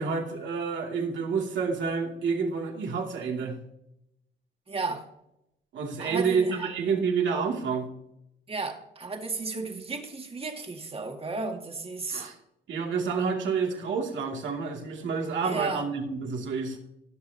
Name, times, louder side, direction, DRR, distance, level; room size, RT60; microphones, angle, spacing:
voice 1, 0.0-3.6 5.7-7.9 12.1-12.3 12.7-16.8, right 5 dB, 70° right, 1 dB, 2.4 m, -29 dB
voice 2, 4.7-5.0 6.0-6.7 8.5-12.2 15.4-15.8, right 3 dB, 30° right, 4 dB, 2.0 m, -34 dB
20.5 x 6.8 x 2.8 m, 0.84 s
cardioid pair, 90°, 20 cm